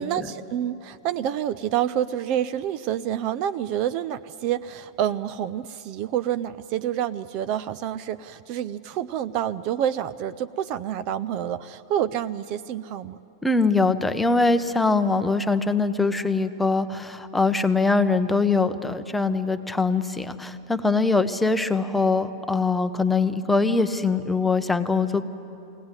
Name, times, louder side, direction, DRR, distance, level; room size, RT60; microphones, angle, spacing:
voice 1, 0.0-13.2, right 10 dB, 40° right, 13 dB, 0.4 m, -28 dB
voice 2, 13.4-25.2, left 3 dB, 5° left, 9 dB, 0.7 m, -22 dB
22.5 x 17.5 x 9.6 m, 2.8 s
supercardioid pair, 155°, 2 cm